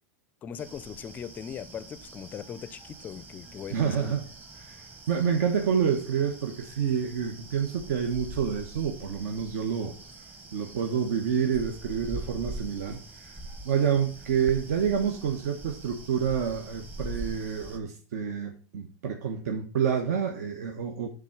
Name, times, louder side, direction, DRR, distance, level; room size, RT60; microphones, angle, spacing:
voice 1, 0.4-4.2, left 8 dB, 20° left, 0.4 m, -40 dB
sound 1, 0.6-17.8, right 2 dB, 15° right, 1.1 m, -43 dB
voice 2, 3.7-4.2 4.6-9.9 10.5-13.4 13.6-21.1, right 7 dB, 70° right, 1.2 m, -28 dB
10.5 x 3.8 x 5.9 m
supercardioid pair, 160°, 9 cm